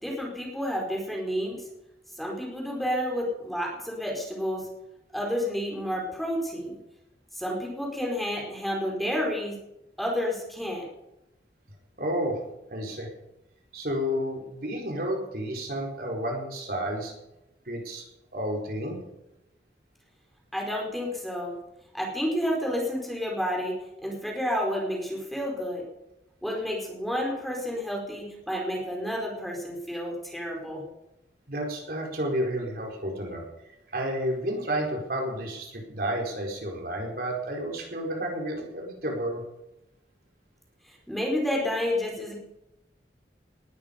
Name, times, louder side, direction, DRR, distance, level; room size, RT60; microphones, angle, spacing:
voice 1, 0.0-1.6 2.1-4.7 5.1-6.8 7.3-9.6 10.0-10.8 20.5-21.6 21.9-23.7 24.0-25.8 26.4-30.8 40.8-42.3, equal, ahead, -1 dB, 4.5 m, -30 dB
voice 2, 12.0-12.4 12.7-13.1 13.7-17.1 17.7-18.0 18.3-19.0 31.5-33.4 33.9-39.4, equal, 55° right, 0 dB, 4.3 m, -31 dB
19.5 x 13.0 x 5.3 m, 0.90 s
head